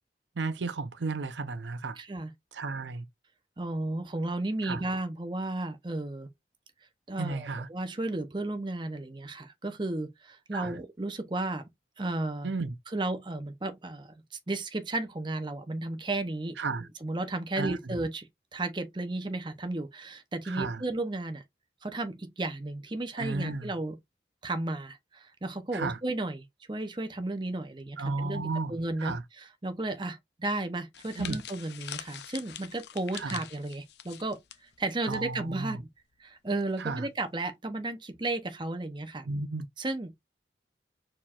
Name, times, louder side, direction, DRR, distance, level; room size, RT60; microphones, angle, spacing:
voice 1, 0.4-2.0 2.5-3.1 4.6-4.8 7.2-7.7 10.5-10.7 12.4-12.7 16.6-16.9 17.6-18.0 20.5-20.8 23.2-23.7 25.7-26.0 28.0-29.2 31.2-31.4 33.1-33.4 35.1-35.8 36.8-37.0 39.2-39.7, right 3 dB, 85° right, 0.6 m, -33 dB
voice 2, 2.0-2.3 3.6-6.3 7.1-11.7 12.0-12.5 12.9-14.1 14.5-16.5 16.8-21.4 21.8-24.0 24.4-34.4 34.8-35.9 36.2-39.3 39.8-40.1, right 2 dB, 25° right, 0.7 m, -34 dB
sound 1, 30.9-35.2 35.5-35.7 36.6-36.9, left 10 dB, 75° left, 0.6 m, -44 dB
4.5 x 4.2 x 2.4 m
head